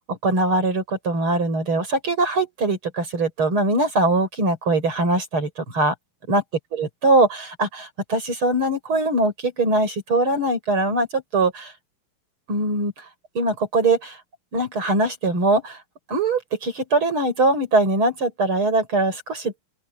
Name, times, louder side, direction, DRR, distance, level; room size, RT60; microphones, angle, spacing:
voice 1, 0.1-5.9 6.3-6.4 6.7-11.7 12.5-12.9 13.4-14.2 14.5-15.8 16.1-19.5, right 2 dB, 40° right, 6.9 m, -22 dB
open air
omnidirectional pair, 3.5 m